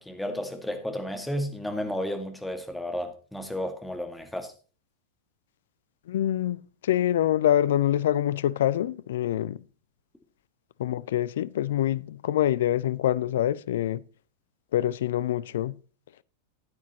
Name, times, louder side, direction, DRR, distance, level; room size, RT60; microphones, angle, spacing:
voice 1, 0.0-4.5, left 1 dB, 5° left, 1.8 m, -32 dB
voice 2, 6.1-9.6 10.8-14.0 14.7-15.8, left 12 dB, 60° left, 0.4 m, -25 dB
14.0 x 9.4 x 2.9 m
figure-of-eight pair, 90°, 0 cm